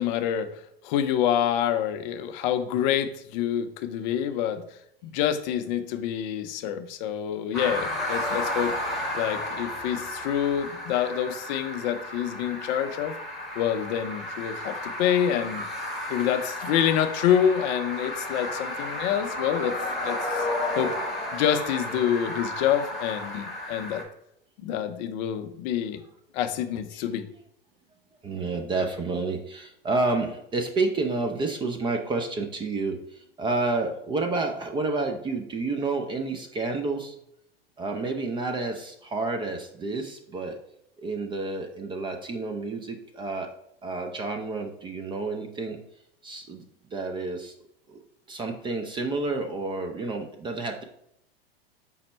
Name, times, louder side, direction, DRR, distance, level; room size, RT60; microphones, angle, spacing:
voice 1, 0.0-4.6 5.0-8.7 9.1-13.1 13.6-15.7 16.1-19.8 20.0-20.5 20.7-20.9 21.3-24.0 24.6-26.0 26.3-27.3, left 9 dB, 50° left, 8 dB, 0.5 m, -27 dB
sound 1, 7.5-24.0, left 1 dB, ahead, 1.0 m, -33 dB
voice 2, 28.2-37.2 37.8-40.6 41.0-43.5 43.8-45.8 46.2-46.6 46.9-47.5 47.9-48.0 48.3-50.8, right 3 dB, 15° right, 4 dB, 0.4 m, -30 dB
5.2 x 2.1 x 4.3 m, 0.75 s
hypercardioid pair, 100°, 30 cm